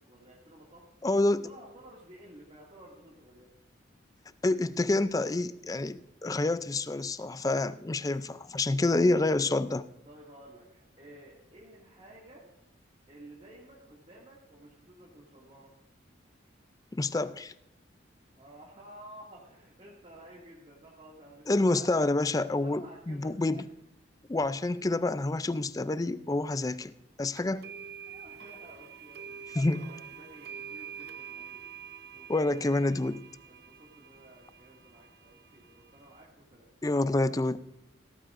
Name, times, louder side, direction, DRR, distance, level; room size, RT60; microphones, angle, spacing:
voice 1, 0.1-0.8 1.4-3.5 10.0-12.4 13.1-15.7 18.4-22.2 22.6-23.6 28.1-31.6 32.1-32.5 32.8-32.9 33.4-36.7, right 1 dB, 30° right, -5 dB, 2.2 m, -53 dB
voice 2, 1.0-1.5 4.4-9.8 17.0-17.5 21.5-23.7 24.3-26.9 27.2-27.7 29.5-29.9 32.3-33.2 36.8-37.6, left 2 dB, 20° left, 15 dB, 0.4 m, -28 dB
sound 1, 27.4-36.2, right 7 dB, 55° right, 0.7 m, -47 dB
16.5 x 14.0 x 2.6 m, 0.84 s
head